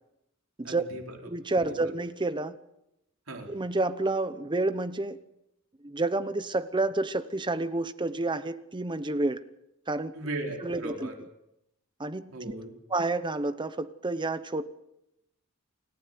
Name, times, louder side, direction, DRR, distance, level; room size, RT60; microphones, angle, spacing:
voice 1, 0.6-1.2 1.7-1.9 3.3-3.5 10.1-11.1 12.3-12.7, right 2 dB, 70° right, 2 dB, 4.5 m, -37 dB
voice 2, 1.2-2.6 3.5-5.2 5.8-9.4 9.9-10.1 10.6-11.1 12.0-12.3 12.9-14.6, right 2 dB, 20° right, 12 dB, 0.9 m, -29 dB
28.5 x 15.0 x 9.4 m, 0.86 s
head